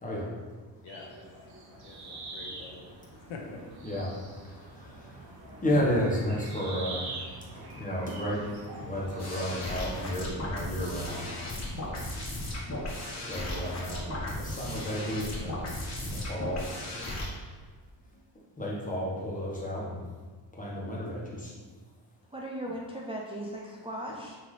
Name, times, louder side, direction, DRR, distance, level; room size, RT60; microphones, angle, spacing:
voice 1, 0.8-1.4 1.8-2.9 3.2-3.6 10.7-10.8, left 4 dB, 80° left, 0 dB, 0.9 m, -46 dB
sound 1, 0.9-10.0, right 2 dB, 55° right, 1.0 m, -44 dB
voice 2, 5.6-7.1 7.8-8.4 8.8-11.2 13.3-14.1 14.4-15.6 16.0-16.6 18.6-20.0 20.6-21.5, equal, 20° left, -4 dB, 1.2 m, -32 dB
sound 2, 9.2-17.3, left 1 dB, 35° left, 1.2 m, -36 dB
voice 3, 22.3-24.4, right 1 dB, 15° right, -4 dB, 0.4 m, -37 dB
5.7 x 2.8 x 3.2 m, 1.4 s
cardioid pair, 125°, 44 cm